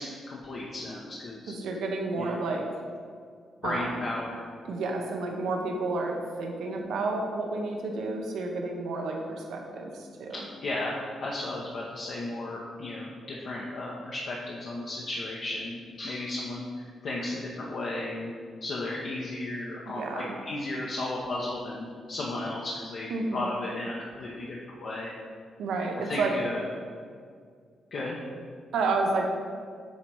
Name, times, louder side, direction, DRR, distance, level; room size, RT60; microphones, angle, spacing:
voice 1, 0.0-1.5 2.2-2.4 3.6-4.4 10.3-18.3 18.6-25.1 26.0-26.6 27.9-28.2, left 2 dB, 65° left, -4 dB, 0.8 m, -34 dB
voice 2, 1.5-2.7 3.6-3.9 4.7-10.5 19.9-20.4 23.1-23.5 25.6-26.3 28.7-29.3, right 3 dB, 85° right, 2 dB, 0.8 m, -30 dB
8.1 x 3.0 x 4.7 m, 2.1 s
cardioid pair, 90°, 0 cm